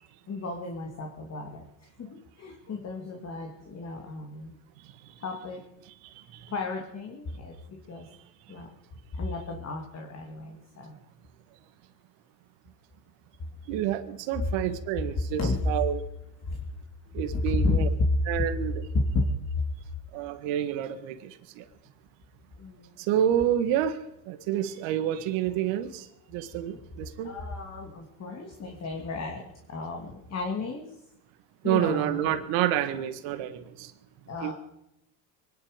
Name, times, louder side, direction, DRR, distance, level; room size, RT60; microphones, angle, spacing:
voice 1, 0.3-4.5 5.2-5.6 6.5-8.1 8.5-8.7 9.1-11.0 15.4-15.7 16.4-16.6 17.1-18.1 18.9-19.3 22.6-22.9 26.7-26.8 27.2-31.0 31.6-32.4 34.3-34.5, left 3 dB, 30° left, 3 dB, 2.6 m, -32 dB
voice 2, 13.7-16.0 17.1-17.9 18.3-18.7 20.1-21.6 23.1-24.0 24.3-26.0 26.3-27.3 31.6-33.9 34.4-34.5, right 11 dB, 65° right, 9 dB, 1.8 m, -28 dB
24.0 x 10.5 x 5.1 m, 0.84 s
supercardioid pair, 105°, 47 cm